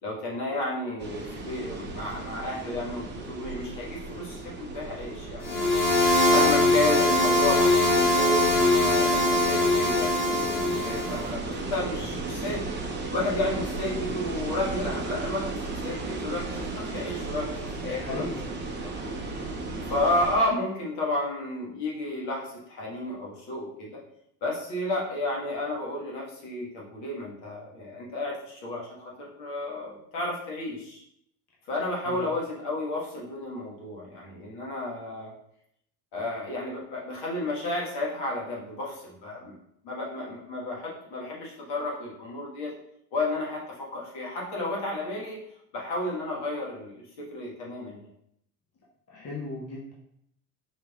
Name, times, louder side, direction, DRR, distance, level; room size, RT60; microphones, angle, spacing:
voice 1, 0.0-5.7 6.3-12.6 13.1-15.5 15.8-18.2 19.0-19.1 19.8-24.0 24.4-31.0 31.7-35.3 36.1-39.5 39.8-42.7 43.1-45.4 45.7-48.0, left 1 dB, 55° left, -3 dB, 1.5 m, -32 dB
sound 1, 1.0-20.4, right 3 dB, 20° right, 0.7 m, -35 dB
sound 2, 5.4-11.2, left 2 dB, 85° left, 1.0 m, -22 dB
voice 2, 18.0-18.4 32.0-32.3 49.1-49.9, left 3 dB, 30° left, -4 dB, 1.0 m, -36 dB
4.7 x 3.2 x 2.3 m, 0.74 s
hypercardioid pair, 80°, 49 cm